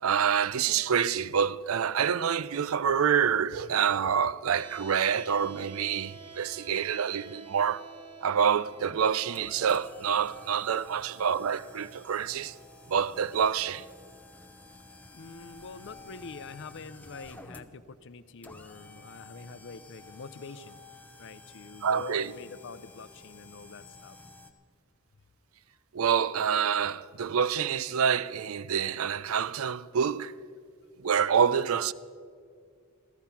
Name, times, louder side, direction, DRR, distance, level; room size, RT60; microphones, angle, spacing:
voice 1, 0.0-7.8 8.2-12.5 12.9-13.8 21.8-22.3 25.9-30.3 31.0-31.9, right 7 dB, 75° right, 0.4 m, -27 dB
sound 1, 4.5-16.5, right 6 dB, 25° right, 1.4 m, -51 dB
sound 2, 8.6-24.5, left 2 dB, 5° left, 0.8 m, -51 dB
voice 2, 15.1-20.8 21.2-24.2, left 4 dB, 60° left, 0.6 m, -45 dB
15.0 x 14.0 x 5.8 m
head